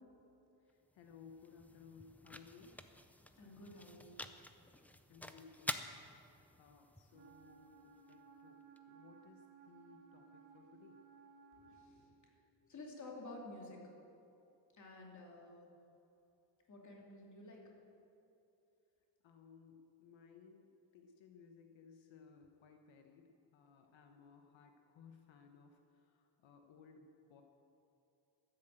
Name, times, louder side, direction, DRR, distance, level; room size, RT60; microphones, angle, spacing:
voice 1, 0.6-2.8 5.1-5.8 6.6-8.6 8.9-11.0 19.2-27.4, left 5 dB, 85° left, 3 dB, 1.2 m, -60 dB
sound 1, 0.7-8.8, left 1 dB, 5° left, 0.4 m, -49 dB
voice 2, 3.3-4.2 11.5-12.1 12.6-13.9 14.7-15.7 16.7-17.7, left 2 dB, 40° left, -2 dB, 2.7 m, -52 dB
Wind instrument woodwind instrument, 7.1-11.9, right 6 dB, 75° right, 2.2 m, -61 dB
12.5 x 10.0 x 7.8 m, 2.9 s
wide cardioid pair, 160°, 44 cm